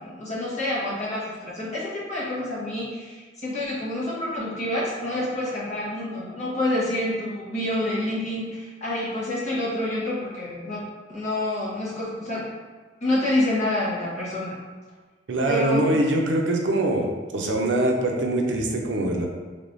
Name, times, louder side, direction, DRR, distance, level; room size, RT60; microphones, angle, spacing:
voice 1, 0.0-12.5 13.0-14.6 15.5-15.9, left 1 dB, 40° left, -7 dB, 1.1 m, -28 dB
voice 2, 15.3-17.1 17.3-19.3, right 1 dB, 80° right, 1 dB, 0.5 m, -23 dB
3.4 x 3.4 x 2.6 m, 1.4 s
head